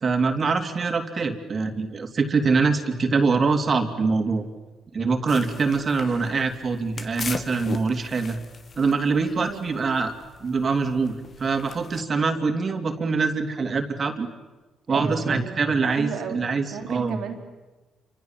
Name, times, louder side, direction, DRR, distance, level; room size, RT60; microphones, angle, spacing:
voice 1, 0.0-4.5 4.9-8.4 8.8-10.1 10.4-14.3 14.9-17.2, right 4 dB, 40° right, 6 dB, 2.9 m, -24 dB
sound 1, 5.3-12.0, left 5 dB, 45° left, 1.9 m, -39 dB
voice 2, 9.4-9.7 14.9-17.4, right 7 dB, 75° right, 4 dB, 3.8 m, -35 dB
28.5 x 25.5 x 7.5 m, 1.2 s
cardioid pair, 90°, 0 cm